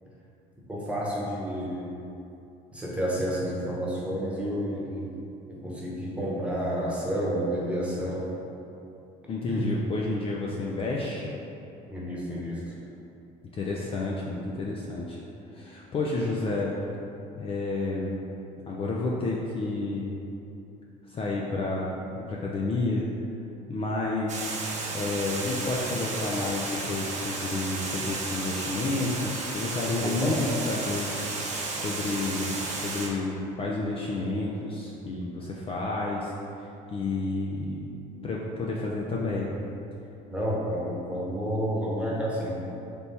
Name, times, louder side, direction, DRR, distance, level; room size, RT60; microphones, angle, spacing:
voice 1, 0.7-1.9 2.7-5.1 5.5-8.3 9.5-9.7 11.9-12.6 29.9-30.4 40.3-42.6, equal, 5° right, -6 dB, 1.1 m, -30 dB
voice 2, 9.3-11.3 13.5-15.2 15.5-16.8 17.4-18.2 18.7-20.2 21.1-21.9 22.3-23.1 23.7-24.5 24.9-31.1 31.7-36.3 36.9-37.9 38.2-39.6, left 2 dB, 35° left, -3 dB, 0.4 m, -30 dB
Water, 24.3-33.1, right 3 dB, 45° right, 0.7 m, -33 dB
3.4 x 3.0 x 4.1 m, 2.8 s
cardioid pair, 100°, 17 cm